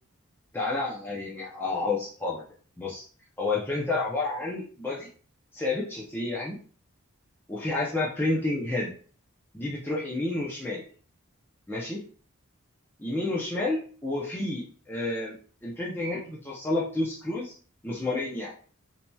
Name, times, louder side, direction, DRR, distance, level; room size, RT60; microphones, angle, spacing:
voice 1, 0.5-2.4 2.8-3.0 3.4-5.1 5.5-6.6 7.5-8.9 9.5-10.8 11.7-12.0 13.0-15.4 15.6-17.5 17.8-18.5, left 2 dB, 10° left, -5 dB, 0.5 m, -30 dB
4.3 x 2.8 x 2.2 m, 0.42 s
head